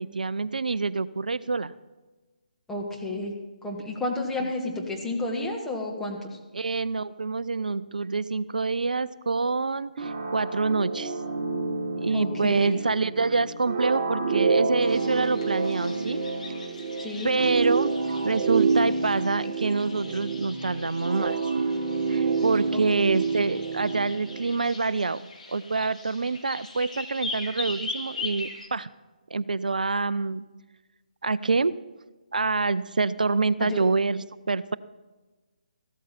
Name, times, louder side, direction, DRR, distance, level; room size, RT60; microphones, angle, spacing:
voice 1, 0.0-1.7 6.5-11.2 12.0-16.2 17.2-17.9 18.2-21.4 22.1-25.2 25.5-28.9 29.3-30.4 31.2-31.7 32.3-34.8, right 4 dB, 70° right, 17 dB, 0.4 m, -26 dB
voice 2, 2.7-3.4 3.6-6.4 12.1-12.8 17.0-17.3 22.7-23.2 33.6-33.8, left 2 dB, 5° left, -2 dB, 1.5 m, -31 dB
sound 1, 10.0-24.5, right 4 dB, 45° right, 1.4 m, -28 dB
sound 2, 14.8-28.7, left 3 dB, 60° left, 2.7 m, -41 dB
14.5 x 13.0 x 4.2 m, 1.2 s
figure-of-eight pair, 140°, 5 cm